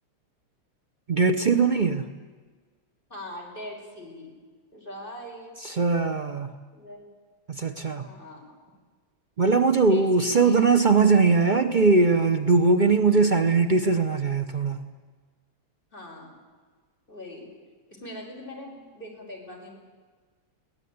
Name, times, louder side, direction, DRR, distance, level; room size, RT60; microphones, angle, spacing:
voice 1, 1.1-2.1 5.7-6.5 7.5-8.1 9.4-14.8, right 4 dB, 90° right, 7 dB, 0.4 m, -21 dB
voice 2, 3.1-4.4 4.7-5.5 6.7-7.1 8.0-8.5 9.8-10.6 15.9-16.4 17.1-17.5 17.9-19.8, left 1 dB, 20° left, -1 dB, 5.8 m, -41 dB
22.0 x 18.0 x 9.5 m, 1.4 s
omnidirectional pair, 2.4 m